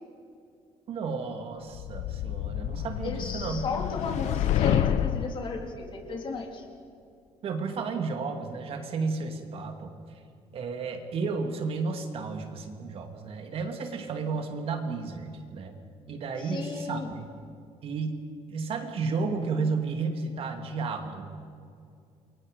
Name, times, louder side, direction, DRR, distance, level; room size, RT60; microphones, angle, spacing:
voice 1, 0.9-3.6 7.4-9.9 10.5-15.7 16.1-17.3 17.8-18.2 18.5-21.3, right 4 dB, 50° right, 5 dB, 2.5 m, -32 dB
sound 1, 1.7-5.4, left 11 dB, 70° left, 0.9 m, -28 dB
voice 2, 3.0-6.7 16.4-17.1, left 4 dB, 45° left, 2 dB, 3.4 m, -34 dB
29.0 x 22.5 x 5.2 m, 2.4 s
cardioid pair, 155°, 12 cm